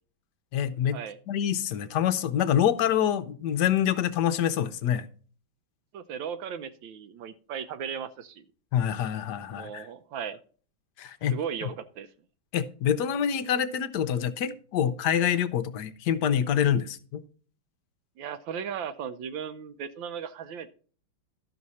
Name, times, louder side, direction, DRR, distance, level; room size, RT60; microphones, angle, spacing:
voice 1, 0.5-1.0 1.3-5.1 8.7-9.9 11.0-11.4 11.6-11.7 12.5-17.2, left 9 dB, 65° left, 1.1 m, -26 dB
voice 2, 5.9-8.4 9.5-10.4 11.3-12.1 18.2-20.7, right 7 dB, 75° right, 1.3 m, -36 dB
12.5 x 6.2 x 4.1 m
omnidirectional pair, 2.2 m